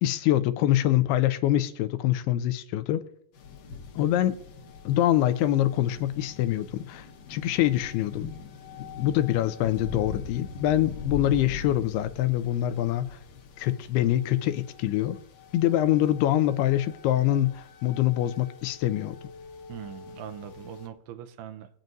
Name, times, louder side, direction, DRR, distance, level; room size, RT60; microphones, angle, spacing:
voice 1, 0.0-3.0 4.0-4.4 4.9-8.4 9.0-13.2 13.6-15.2 15.5-19.2, left 13 dB, 80° left, 2.4 m, -25 dB
sound 1, 3.3-20.9, left 5 dB, 65° left, 2.3 m, -42 dB
voice 2, 19.7-21.7, right 10 dB, 85° right, 2.6 m, -41 dB
23.5 x 8.9 x 2.7 m
omnidirectional pair, 4.8 m